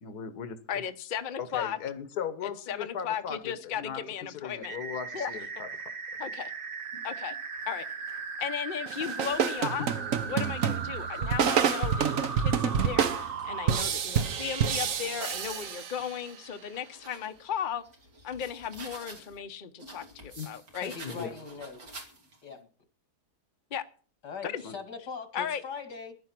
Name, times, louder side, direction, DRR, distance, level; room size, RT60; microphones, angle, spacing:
voice 1, 0.0-0.6 1.4-5.7 6.9-7.0 9.8-9.9 20.4-20.5 21.0-21.3 24.4-24.8, left 7 dB, 70° left, 10 dB, 1.7 m, -38 dB
voice 2, 0.7-1.8 2.4-4.8 5.1-5.3 6.2-6.5 7.0-7.4 7.7-7.9 8.4-9.9 10.3-17.8 18.2-20.9 23.7-23.8 24.4-24.6 25.3-25.6, left 8 dB, 40° left, 8 dB, 0.9 m, -35 dB
sound 1, 4.6-13.8, right 5 dB, 40° right, 1.0 m, -38 dB
sound 2, 7.5-8.3 9.0-11.9 12.4-15.8 16.3-19.4 19.8-22.5, right 2 dB, 85° right, 3.6 m, -51 dB
sound 3, 8.9-16.3, right 8 dB, 55° right, 1.2 m, -28 dB
voice 3, 20.8-22.1 22.4-22.6 24.2-26.1, left 5 dB, 85° left, 7 dB, 2.9 m, -41 dB
15.0 x 11.0 x 6.0 m, 0.41 s
omnidirectional pair, 1.8 m